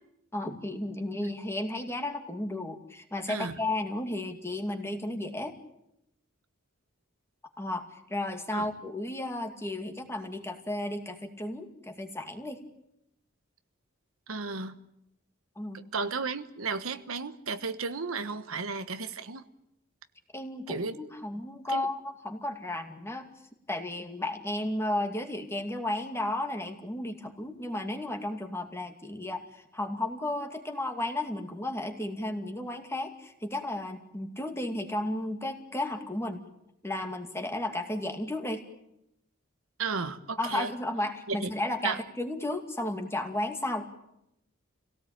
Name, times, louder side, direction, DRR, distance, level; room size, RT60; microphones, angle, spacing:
voice 1, 0.3-5.5 7.6-12.6 15.6-15.8 20.3-22.0 22.2-23.3 23.7-36.4 36.8-38.6 40.4-43.9, left 1 dB, 15° left, 5 dB, 2.4 m, -33 dB
voice 2, 14.3-14.7 15.9-19.4 20.7-20.9 21.7-21.9 39.8-40.7 41.3-41.5 41.8-42.0, right 4 dB, 85° right, 10 dB, 1.3 m, -33 dB
27.5 x 17.5 x 8.9 m, 0.83 s
head